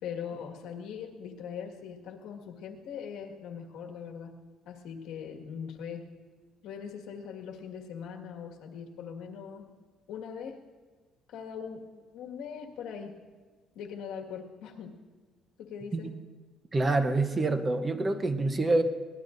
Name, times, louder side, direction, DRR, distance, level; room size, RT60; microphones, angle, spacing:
voice 1, 0.0-4.3 4.7-6.1 6.6-9.7 10.1-10.6 11.3-13.2 13.8-15.0 15.6-16.1, left 7 dB, 75° left, 1 dB, 1.8 m, -41 dB
voice 2, 16.7-18.8, right 2 dB, 20° right, 9 dB, 0.8 m, -26 dB
23.0 x 18.5 x 2.6 m, 1.4 s
cardioid pair, 135°, 0 cm